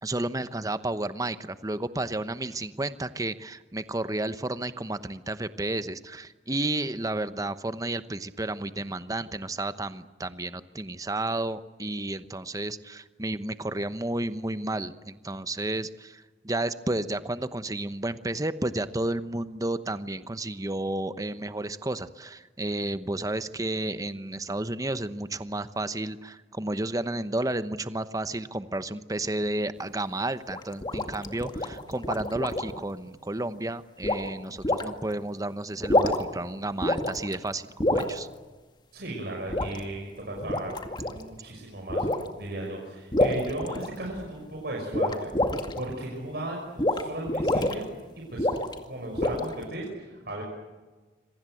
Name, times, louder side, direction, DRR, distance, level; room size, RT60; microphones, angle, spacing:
voice 1, 0.0-38.3, right 2 dB, 20° right, 12 dB, 1.0 m, -32 dB
sound 1, 30.5-32.8 34.0-34.3 34.6-34.8 35.7-36.4 36.8-37.4 37.8-38.1 39.5-39.8 40.4-41.2 41.9-42.3 43.1-44.3 44.9-45.8 46.8-47.0 47.3-47.7 48.4-48.8 49.2-49.6, left 1 dB, 25° left, 2.1 m, -26 dB
voice 2, 38.9-40.8 41.1-42.1 42.4-45.3 45.7-47.9 48.2-48.5 48.8-50.4, right 1 dB, 60° right, -1 dB, 5.8 m, -36 dB
27.0 x 24.5 x 7.8 m, 1.3 s
head